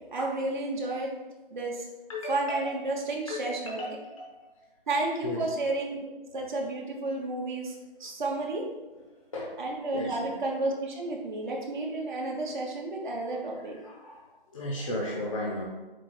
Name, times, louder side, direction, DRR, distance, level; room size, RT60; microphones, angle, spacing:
voice 1, 0.1-1.1 1.5-1.9 2.3-3.8 4.9-8.7 9.6-13.8, right 2 dB, 55° right, -1 dB, 0.9 m, -32 dB
voice 2, 2.1-2.7 3.3-4.6 5.2-5.5 9.3-9.6 9.9-10.2 13.5-15.6, left 1 dB, 35° left, -4 dB, 0.6 m, -36 dB
4.5 x 2.4 x 4.2 m, 1.1 s
hypercardioid pair, 170°, 29 cm